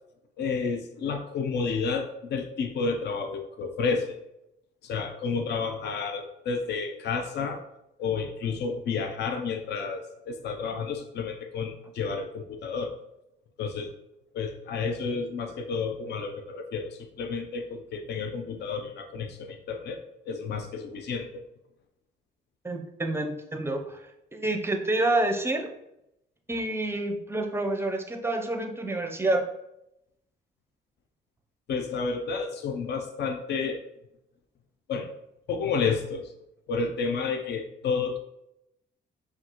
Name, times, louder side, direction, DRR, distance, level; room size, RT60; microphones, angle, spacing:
voice 1, 0.4-4.2 4.8-7.6 8.0-12.9 13.6-13.9 14.3-20.0 20.3-21.4 31.7-33.8 34.9-35.1 35.5-36.3 36.7-38.2, left 5 dB, 60° left, 5 dB, 0.6 m, -31 dB
voice 2, 22.6-24.0 24.3-25.7 26.5-29.5, right 2 dB, 10° right, 4 dB, 0.6 m, -28 dB
5.7 x 2.4 x 2.9 m, 0.84 s
cardioid pair, 90°, 20 cm